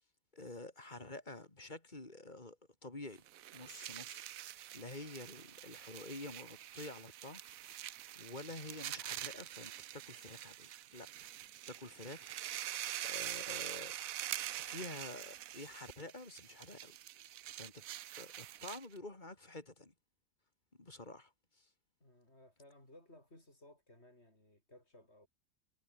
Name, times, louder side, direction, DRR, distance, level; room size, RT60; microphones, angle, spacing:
voice 1, 0.3-3.2 3.5-7.8 8.1-11.3 11.7-12.3 13.0-14.0 14.6-17.0 17.6-17.8 18.2-19.9 20.8-21.7, left 2 dB, 35° left, 3.0 m, -49 dB
sound 1, 3.2-19.0, right 13 dB, 85° right, 1.1 m, -45 dB
voice 2, 22.0-25.3, left 1 dB, 50° left, 8.3 m, -60 dB
omnidirectional pair, 1.4 m